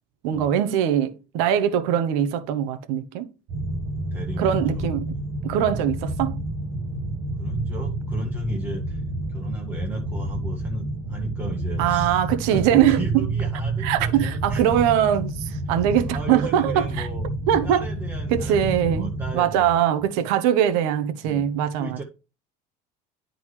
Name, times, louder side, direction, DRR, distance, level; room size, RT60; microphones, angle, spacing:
voice 1, 0.2-3.3 4.4-5.0 5.4-6.4 11.8-13.2 13.8-17.1 17.5-17.9 18.3-22.0, right 10 dB, 85° right, 0.9 m, -22 dB
sound 1, 3.5-19.3, right 2 dB, 45° right, 1.1 m, -29 dB
voice 2, 3.6-4.8 7.4-9.0 9.3-12.2 12.5-14.6 16.1-17.3 17.6-19.8 21.2-21.5 21.8-22.0, right 2 dB, 10° right, 0.7 m, -34 dB
10.5 x 3.9 x 3.1 m
cardioid pair, 175°, 18 cm